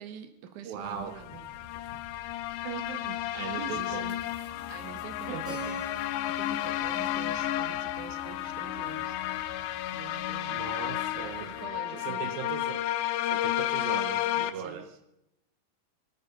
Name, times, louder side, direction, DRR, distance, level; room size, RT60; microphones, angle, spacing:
voice 1, 0.0-1.5 3.3-4.0 4.5-9.7 9.9-10.6 11.1-12.4 14.3-15.0, right 7 dB, 60° right, 7 dB, 2.6 m, -46 dB
voice 2, 0.7-1.2 2.6-4.2 5.3-5.7 10.5-11.5 11.9-12.8 13.3-15.1, right 8 dB, 80° right, 8 dB, 2.7 m, -39 dB
sound 1, 0.8-11.7, left 5 dB, 65° left, 3.3 m, -53 dB
sound 2, 1.1-14.5, left 13 dB, 80° left, 2.5 m, -32 dB
Keyboard (musical), 5.4-10.0, left 2 dB, 5° right, 2.3 m, -46 dB
25.5 x 8.7 x 5.2 m, 0.84 s
omnidirectional pair, 4.2 m